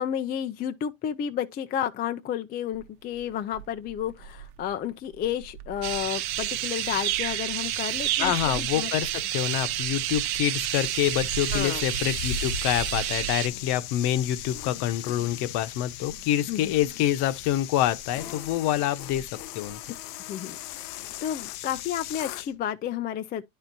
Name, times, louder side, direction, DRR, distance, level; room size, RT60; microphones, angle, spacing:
voice 1, 0.0-8.9 11.5-11.9 16.5-16.7 20.3-20.6 21.0-23.4, left 9 dB, 25° left, 0.3 m, -31 dB
sound 1, 2.7-21.3, right 9 dB, 80° right, 1.1 m, -44 dB
sound 2, 5.8-13.5, right 13 dB, 55° right, 0.8 m, -30 dB
voice 2, 8.2-19.8, left 12 dB, 55° left, 0.9 m, -27 dB
sound 3, 10.5-22.5, left 12 dB, 90° left, 0.6 m, -39 dB
10.5 x 4.4 x 2.6 m
supercardioid pair, 120°, 45 cm